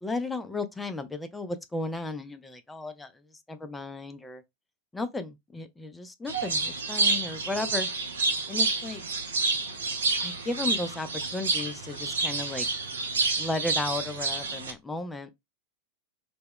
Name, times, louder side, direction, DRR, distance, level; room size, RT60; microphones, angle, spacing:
voice 1, 0.0-3.1 3.5-4.4 4.9-7.9 8.5-9.0 10.2-12.7 13.4-15.3, left 2 dB, 10° left, 0.3 m, -34 dB
sound 1, 6.3-14.7, right 3 dB, 70° right, 0.5 m, -29 dB
2.1 x 2.0 x 3.5 m
figure-of-eight pair, 90°, 0 cm